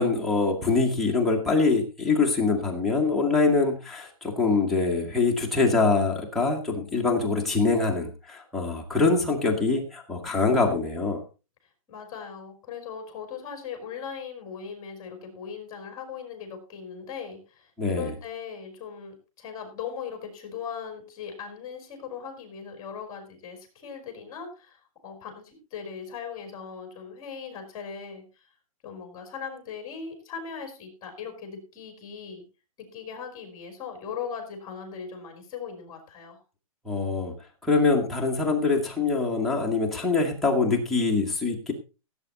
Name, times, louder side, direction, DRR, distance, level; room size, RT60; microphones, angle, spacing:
voice 1, 0.0-11.2 17.8-18.1 36.8-37.3 37.6-41.7, left 4 dB, ahead, -3 dB, 1.7 m, -24 dB
voice 2, 11.9-28.5 28.8-32.4 32.8-36.4, left 6 dB, 20° left, 5 dB, 3.8 m, -39 dB
16.5 x 8.7 x 4.1 m, 0.32 s
hypercardioid pair, 170°, 18 cm